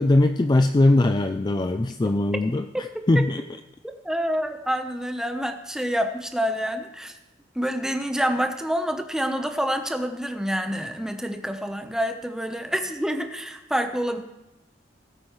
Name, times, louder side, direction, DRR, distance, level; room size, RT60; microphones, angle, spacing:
voice 1, 0.0-3.4, left 2 dB, 20° left, 8 dB, 0.4 m, -21 dB
voice 2, 4.0-7.2 7.5-14.2, equal, 5° right, 5 dB, 0.9 m, -27 dB
19.0 x 8.5 x 3.2 m, 0.99 s
head